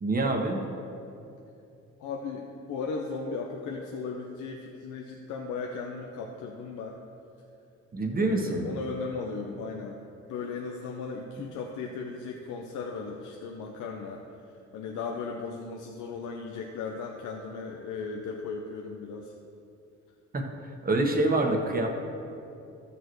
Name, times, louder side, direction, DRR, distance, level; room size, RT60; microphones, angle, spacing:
voice 1, 0.0-0.6 7.9-8.7 20.3-20.5 20.8-21.9, right 2 dB, 30° right, 2 dB, 1.2 m, -26 dB
voice 2, 2.0-7.0 8.1-10.0 10.3-14.2 14.7-19.3, left 4 dB, 85° left, 1 dB, 0.7 m, -36 dB
13.5 x 6.8 x 3.1 m, 2.6 s
cardioid pair, 90°, 30 cm